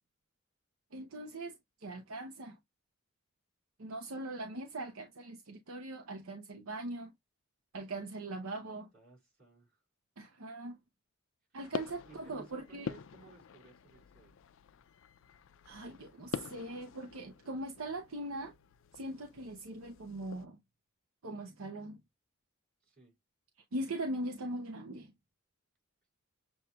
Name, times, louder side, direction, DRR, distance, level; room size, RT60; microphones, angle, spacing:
voice 1, 0.9-1.5 1.8-2.6 3.8-7.1 7.7-8.9 10.2-10.8 11.5-12.9 15.6-18.5 18.9-20.6 21.2-22.0 23.7-25.1, right 1 dB, 75° right, 0.8 m, -41 dB
voice 2, 8.6-9.8 11.5-11.6 11.9-14.4 22.8-23.2, right 4 dB, 45° right, 3.4 m, -59 dB
sound 1, 11.6-20.5, left 6 dB, 65° left, 0.4 m, -46 dB
7.1 x 2.6 x 2.2 m
head